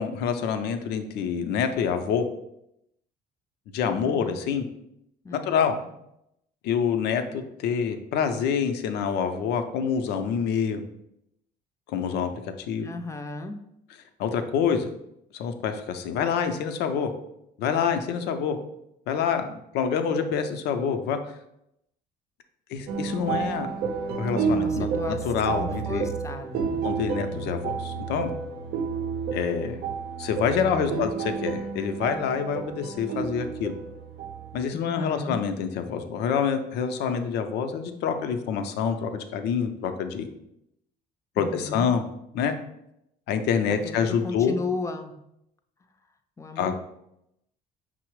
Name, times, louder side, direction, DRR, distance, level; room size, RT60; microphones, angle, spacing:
voice 1, 0.0-2.3 3.7-4.6 5.3-5.8 6.6-10.8 11.9-12.3 12.6-12.9 14.2-14.9 15.3-17.1 17.6-18.6 19.1-21.2 22.7-23.7 24.2-24.9 25.2-26.1 26.8-28.3 29.3-29.8 30.2-33.8 34.5-40.3 41.4-42.0 42.3-42.6 43.3-44.6 46.6-46.8, left 7 dB, 80° left, 7 dB, 0.5 m, -26 dB
voice 2, 4.0-4.4 5.2-5.9 12.8-13.6 24.5-26.8 27.3-27.4 30.6-31.1 34.7-35.4 41.4-41.9 43.8-45.1 46.4-46.8, left 3 dB, 20° left, 6 dB, 0.5 m, -35 dB
sound 1, 22.9-34.6, right 6 dB, 70° right, 0.6 m, -31 dB
5.5 x 2.0 x 4.6 m, 0.80 s
cardioid pair, 110°, 17 cm